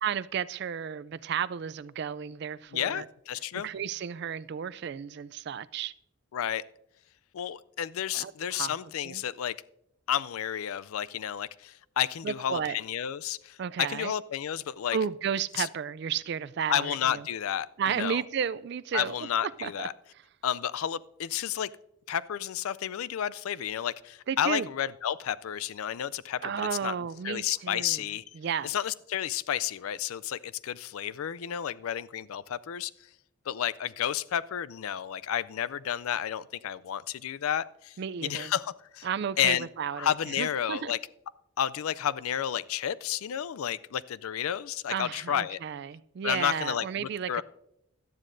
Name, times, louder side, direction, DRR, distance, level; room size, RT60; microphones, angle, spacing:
voice 1, 0.0-3.1 3.5-5.9 8.1-8.7 9.0-9.2 12.2-12.8 13.6-14.1 14.9-17.2 17.8-19.1 19.6-19.9 24.3-24.7 26.4-28.0 28.4-28.7 38.0-38.5 39.0-40.9 44.9-47.4, right 7 dB, 50° right, 0.3 m, -33 dB
voice 2, 2.7-3.7 6.3-6.6 7.3-9.6 10.1-13.6 13.9-15.0 15.6-15.7 16.7-18.2 18.9-19.9 20.4-21.7 22.1-26.9 27.2-28.2 28.6-32.9 33.5-39.1 39.4-39.7 39.9-41.0 41.6-45.6 46.2-47.4, left 10 dB, 80° left, 0.4 m, -31 dB
17.0 x 12.0 x 2.6 m
head